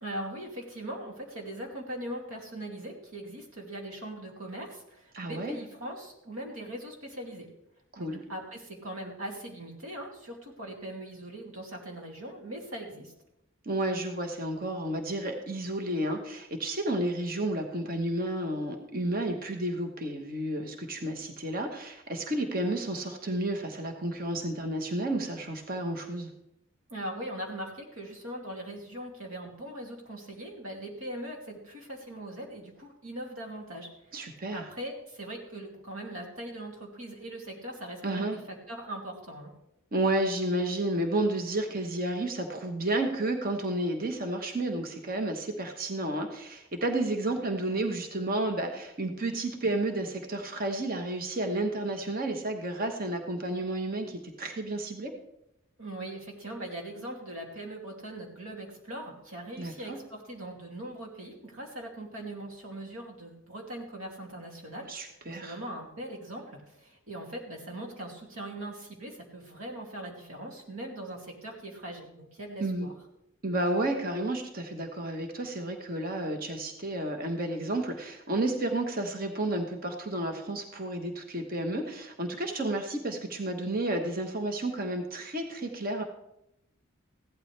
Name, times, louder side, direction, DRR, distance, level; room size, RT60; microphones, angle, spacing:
voice 1, 0.0-7.5 8.0-13.1 26.9-34.2 34.5-38.4 38.7-39.5 55.8-72.9, right 1 dB, 85° right, 0 dB, 2.6 m, -40 dB
voice 2, 5.1-5.6 7.9-8.2 13.6-26.3 34.1-34.6 38.0-38.4 39.9-55.1 59.6-60.0 64.9-65.6 72.6-72.9 73.4-86.0, right 1 dB, 45° right, 4 dB, 1.2 m, -31 dB
15.5 x 11.5 x 3.3 m, 0.82 s
head